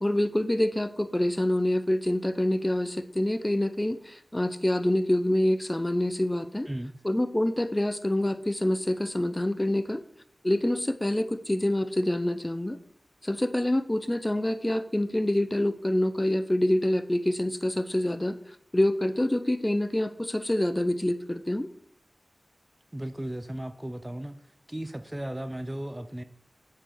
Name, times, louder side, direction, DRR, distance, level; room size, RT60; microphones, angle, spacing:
voice 1, 0.0-6.7 7.0-10.0 10.4-12.8 13.2-18.4 18.7-21.7, left 1 dB, 20° left, 11 dB, 0.7 m, -26 dB
voice 2, 22.9-24.4 24.7-26.2, right 1 dB, 15° right, 11 dB, 0.7 m, -35 dB
11.0 x 4.9 x 6.6 m, 0.70 s
wide cardioid pair, 60°, 0 cm